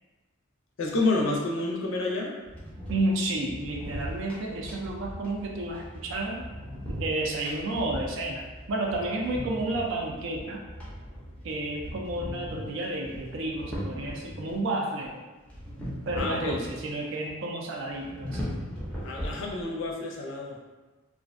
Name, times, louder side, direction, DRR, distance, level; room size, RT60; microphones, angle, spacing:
voice 1, 0.8-2.4 16.1-16.6 19.0-20.6, left 2 dB, 65° left, -2 dB, 0.4 m, -29 dB
sound 1, 2.4-14.6 15.5-17.0 17.3-17.4 17.9-19.8, equal, 5° left, 0.5 m, -39 dB
voice 2, 2.9-6.5 6.9-10.6 11.4-15.2 16.1-18.5, right 2 dB, 60° right, 0 dB, 0.4 m, -31 dB
2.4 x 2.1 x 2.5 m, 1.2 s
head